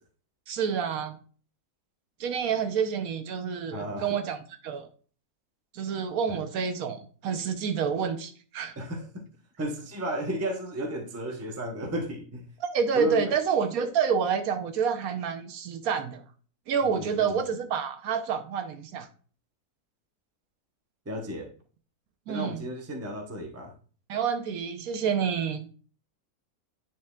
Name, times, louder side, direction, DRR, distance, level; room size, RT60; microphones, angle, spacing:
voice 1, 0.5-1.2 2.2-4.4 4.6-4.9 5.7-8.7 12.6-16.2 16.7-19.1 22.3-22.6 24.1-25.7, right 6 dB, 70° right, 8 dB, 1.1 m, -28 dB
voice 2, 3.7-4.2 6.3-6.4 8.8-9.3 9.6-12.4 12.9-13.3 16.8-17.4 21.1-21.5 22.3-23.7, right 1 dB, 15° right, 2 dB, 0.5 m, -34 dB
9.5 x 4.3 x 2.3 m, 0.41 s
omnidirectional pair, 1.6 m